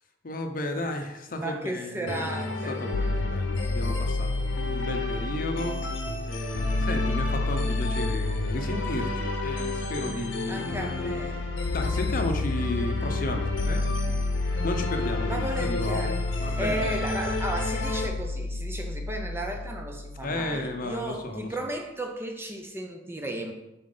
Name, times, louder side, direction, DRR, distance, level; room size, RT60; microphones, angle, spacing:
voice 1, 0.2-5.8 6.3-10.7 11.7-13.9 14.6-17.0 20.2-21.5, left 1 dB, 45° left, 5 dB, 0.7 m, -33 dB
voice 2, 0.7-1.1 1.4-2.8 10.1-11.5 15.3-23.5, right 1 dB, 10° right, 3 dB, 0.5 m, -35 dB
sound 1, 2.1-18.1, left 2 dB, 75° left, 0.9 m, -33 dB
sound 2, 2.9-20.9, left 3 dB, 90° left, 0.4 m, -31 dB
7.4 x 4.2 x 3.9 m, 0.96 s
head